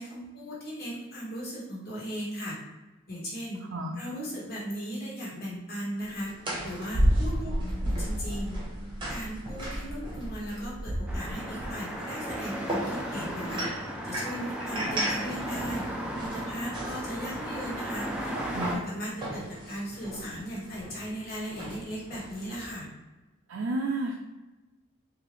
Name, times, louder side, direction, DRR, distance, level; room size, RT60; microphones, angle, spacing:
voice 1, 0.0-2.6 3.1-3.6 4.0-6.4 6.6-8.6 9.1-13.6 14.0-15.8 16.2-18.3 18.9-22.9, equal, 50° left, -6 dB, 1.4 m, -37 dB
sound 1, 6.0-22.7, equal, 20° right, 0.9 m, -34 dB
voice 2, 7.4-8.0 18.5-18.8 23.5-24.2, right 2 dB, 70° right, 0 dB, 0.4 m, -32 dB
sound 2, 11.1-18.8, equal, 5° right, 0.4 m, -35 dB
3.9 x 2.7 x 3.1 m, 1.1 s
head